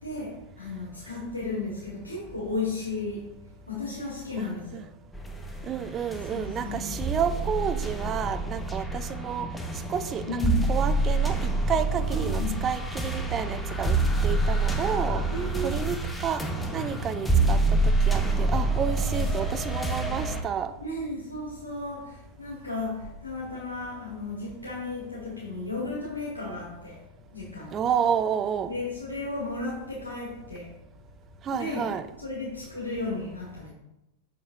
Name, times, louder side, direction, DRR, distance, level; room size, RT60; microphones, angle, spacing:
voice 1, 0.0-3.3 3.7-4.8 6.2-7.0 10.3-10.7 12.1-12.6 15.3-15.8 18.2-18.4 19.0-19.9 20.8-27.0 27.3-27.8 28.7-30.7 31.5-31.9 32.2-33.7, left 2 dB, 85° left, -6 dB, 1.7 m, -34 dB
voice 2, 4.4-4.8 5.6-9.5 9.9-10.4 10.7-14.0 14.2-15.2 15.6-16.0 16.2-16.4 16.7-17.8 18.1-20.7 27.7-28.7 31.4-32.0, right 8 dB, 25° right, 10 dB, 0.5 m, -30 dB
sound 1, 5.1-20.4, right 2 dB, 10° left, 0.8 m, -27 dB
6.4 x 5.6 x 2.8 m, 0.89 s
figure-of-eight pair, 90°, 0 cm